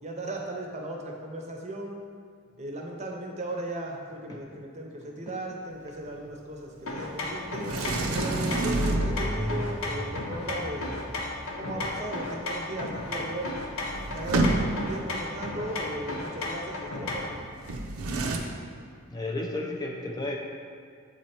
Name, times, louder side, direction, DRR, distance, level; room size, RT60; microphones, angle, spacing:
voice 1, 0.0-2.0 2.6-7.7 8.1-11.0 11.6-13.5 14.1-17.5, right 1 dB, 35° right, 1 dB, 0.7 m, -36 dB
sound 1, 6.9-17.4, left 2 dB, 80° left, 0.8 m, -34 dB
Sliding door, 7.6-9.6 13.1-13.2 13.4-15.0 17.6-18.4, right 2 dB, 85° right, 0.6 m, -28 dB
sound 2, 9.0-17.5, equal, 5° right, 0.8 m, -42 dB
voice 2, 19.1-20.4, left 2 dB, 20° left, 0 dB, 0.4 m, -33 dB
8.0 x 3.3 x 4.3 m, 2.2 s
head